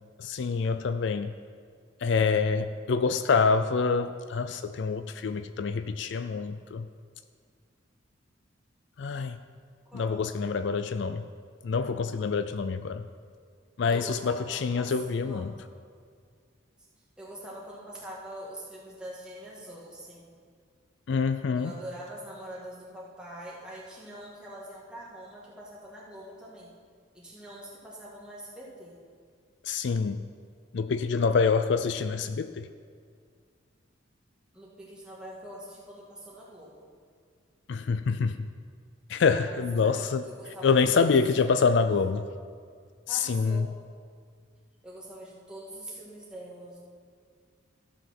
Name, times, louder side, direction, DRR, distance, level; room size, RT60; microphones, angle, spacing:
voice 1, 0.2-1.3 2.0-6.9 9.0-9.4 9.9-11.2 11.6-13.0 13.8-15.5 21.1-21.7 29.7-30.2 30.7-32.7 37.7-38.5 39.1-40.2 40.6-42.2 43.1-43.7, left 5 dB, 60° left, 11 dB, 0.4 m, -26 dB
voice 2, 9.9-10.2 13.9-14.9 15.2-15.5 17.2-20.3 21.5-26.7 27.1-29.0 34.5-36.9 39.3-41.9 43.1-43.8 44.8-46.8, right 1 dB, 5° right, -6 dB, 2.1 m, -44 dB
14.0 x 5.9 x 6.0 m, 2.1 s
head